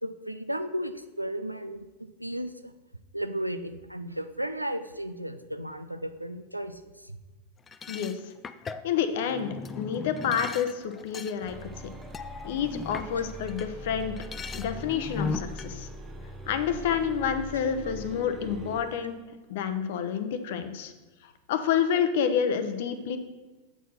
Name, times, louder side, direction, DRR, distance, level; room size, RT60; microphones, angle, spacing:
voice 1, 0.0-1.9 2.2-2.7 3.1-6.8 7.1-7.2 13.2-13.3 16.7-16.8, right 1 dB, 90° right, 10 dB, 0.4 m, -34 dB
sound 1, 7.7-13.7 14.0-15.7, left 4 dB, 20° left, 0.3 m, -38 dB
voice 2, 8.8-11.6 12.4-14.1 14.5-15.9 16.5-19.2 19.5-20.9 21.5-23.2, left 8 dB, 55° left, 9 dB, 0.7 m, -28 dB
sound 2, 11.4-18.9, right 1 dB, 15° right, 0.9 m, -42 dB
8.1 x 4.6 x 5.7 m, 1.2 s
figure-of-eight pair, 90°, 0 cm